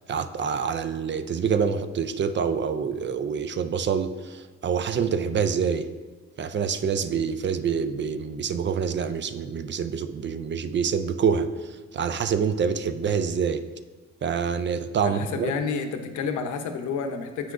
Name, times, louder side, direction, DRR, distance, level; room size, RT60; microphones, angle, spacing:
voice 1, 0.1-5.9 6.4-13.6 14.2-15.5, right 6 dB, 40° right, 11 dB, 0.4 m, -26 dB
voice 2, 15.0-17.5, left 5 dB, 80° left, 6 dB, 0.7 m, -30 dB
8.2 x 5.8 x 2.5 m, 1.3 s
cardioid pair, 90°, 29 cm